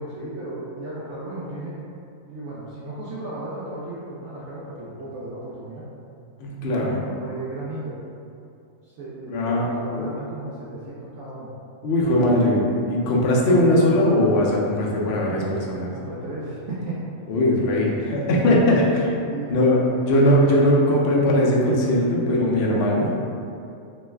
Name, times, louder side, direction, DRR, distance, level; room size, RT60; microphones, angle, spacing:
voice 1, 0.0-1.8 2.3-5.8 6.8-8.0 8.8-11.5 15.2-15.5 15.9-17.0 19.3-20.1, right 2 dB, 70° right, -8 dB, 0.8 m, -34 dB
voice 2, 6.4-7.0 9.3-9.6 9.9-10.1 11.8-15.9 17.3-19.2 19.5-19.8 20.1-23.1, left 1 dB, 65° left, -3 dB, 0.7 m, -20 dB
3.1 x 2.0 x 3.3 m, 2.6 s
omnidirectional pair, 1.4 m